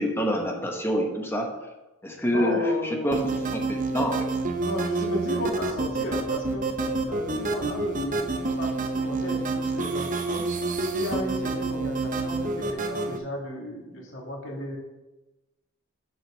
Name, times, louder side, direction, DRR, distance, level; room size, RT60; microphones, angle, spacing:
voice 1, 0.0-1.5 2.0-3.3 3.5-4.3, equal, 10° left, 1 dB, 1.0 m, -26 dB
voice 2, 2.3-3.4 4.6-6.6 7.1-8.2 8.6-10.4 10.9-14.8, left 1 dB, 65° left, -2 dB, 2.0 m, -34 dB
sound 1, 3.1-13.2, right 3 dB, 40° right, 0.7 m, -28 dB
6.1 x 5.1 x 6.2 m, 1.1 s
head